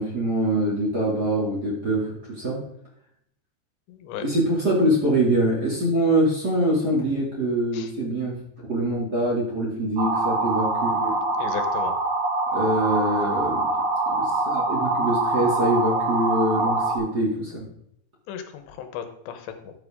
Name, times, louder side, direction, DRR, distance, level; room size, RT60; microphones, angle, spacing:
voice 1, 0.0-2.6 4.2-8.4 8.7-11.2 12.5-13.6 14.2-17.7, right 1 dB, 30° right, -5 dB, 2.3 m, -24 dB
voice 2, 3.9-4.2 7.7-7.9 11.4-11.9 18.3-19.7, left 9 dB, 90° left, 8 dB, 3.4 m, -35 dB
sound 1, 10.0-17.0, right 2 dB, 55° right, 3.1 m, -24 dB
13.0 x 7.7 x 3.6 m, 0.71 s
omnidirectional pair, 4.9 m